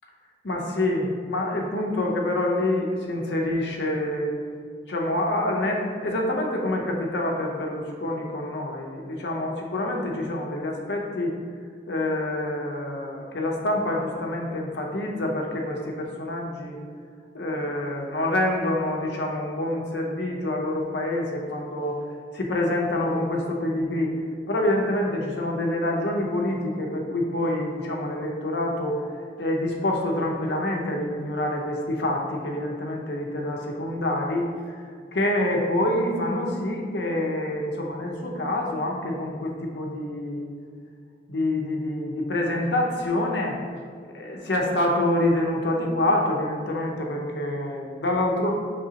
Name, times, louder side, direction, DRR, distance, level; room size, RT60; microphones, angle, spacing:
voice 1, 0.4-4.3 4.9-11.3 11.9-16.8 17.3-22.0 22.3-24.1 24.5-29.0 29.4-34.8 35.1-40.4 41.3-43.6 44.1-48.5, left 1 dB, 80° left, 0 dB, 0.7 m, -26 dB
4.9 x 3.4 x 2.8 m, 2.1 s
head